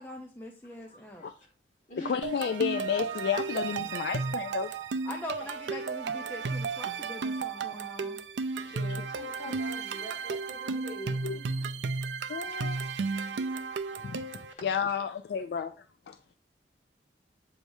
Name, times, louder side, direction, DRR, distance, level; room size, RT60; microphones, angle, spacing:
voice 1, 0.0-1.3 5.0-8.2, left 1 dB, 10° left, 0.6 m, -42 dB
voice 2, 0.9-1.5 1.9-2.1 8.7-11.6 12.5-12.9 14.3-14.9, right 1 dB, 40° left, 2.2 m, -44 dB
voice 3, 2.0-4.8 10.3-10.4 11.2-11.4 12.3-12.8 14.0-14.2 14.6-15.8 16.1-16.2, left 7 dB, 65° left, 0.3 m, -31 dB
sound 1, 2.2-14.5, right 4 dB, 75° right, 0.4 m, -34 dB
7.8 x 4.6 x 2.7 m
head